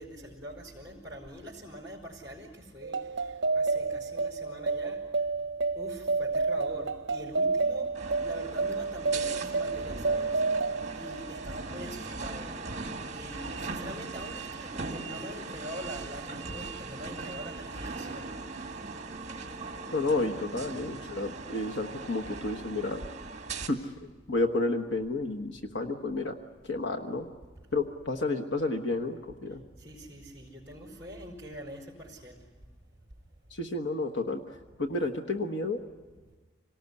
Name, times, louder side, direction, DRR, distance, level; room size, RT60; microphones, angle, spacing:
voice 1, 0.0-3.0 3.5-5.0 5.7-7.9 8.2-10.4 10.9-12.6 13.1-18.3 29.8-32.4, equal, 15° right, -5 dB, 4.7 m, -43 dB
sound 1, 2.8-11.8, right 3 dB, 60° right, 0.8 m, -30 dB
sound 2, 7.9-23.7, right 3 dB, 35° right, 2.1 m, -39 dB
voice 2, 19.9-23.0 23.7-26.4 26.6-27.2 27.7-29.6 33.5-35.8, left 2 dB, 70° left, 4 dB, 1.3 m, -31 dB
26.5 x 18.5 x 9.6 m, 1.3 s
head